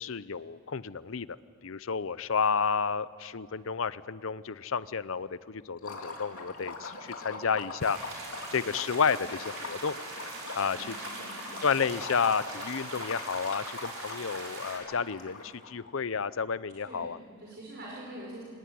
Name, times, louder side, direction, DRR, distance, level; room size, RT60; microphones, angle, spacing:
voice 1, 0.0-1.4 1.6-10.0 10.5-10.8 11.6-17.2, left 6 dB, 65° left, 17 dB, 0.6 m, -31 dB
Liquid, 5.8-15.7, left 3 dB, 85° left, 3.0 m, -42 dB
sound 1, 7.8-14.8, right 2 dB, 70° right, 5.7 m, -42 dB
voice 2, 10.7-11.7 16.8-17.1 17.4-18.4, right 1 dB, 50° right, -4 dB, 5.4 m, -45 dB
25.5 x 18.5 x 9.5 m, 2.1 s
head